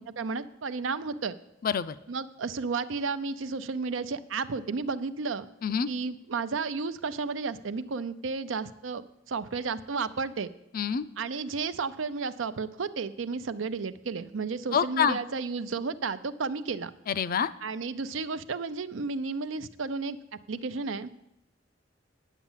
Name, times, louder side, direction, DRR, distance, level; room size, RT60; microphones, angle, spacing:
voice 1, 0.0-1.3 2.1-5.5 5.9-10.5 11.2-16.9 17.6-20.2 20.5-21.1, right 4 dB, 85° right, 13 dB, 0.6 m, -32 dB
voice 2, 1.6-2.0 5.6-5.9 10.7-11.0 14.7-15.2 17.1-17.5, left 7 dB, 50° left, 14 dB, 0.4 m, -26 dB
10.0 x 7.1 x 7.3 m, 0.88 s
head